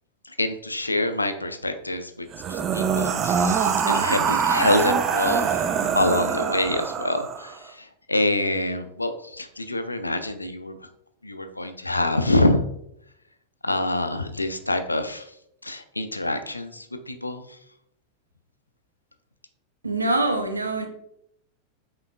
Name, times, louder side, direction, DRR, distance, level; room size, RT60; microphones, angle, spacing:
voice 1, 0.3-10.8 11.2-12.7 13.6-15.3 15.6-17.5, left 2 dB, 85° left, 9 dB, 0.3 m, -26 dB
sound 1, 2.3-7.6, right 6 dB, 30° right, 0.4 m, -24 dB
voice 2, 19.8-20.9, right 2 dB, 80° right, 5 dB, 0.6 m, -24 dB
5.4 x 3.8 x 2.3 m, 0.75 s
figure-of-eight pair, 90°, 0 cm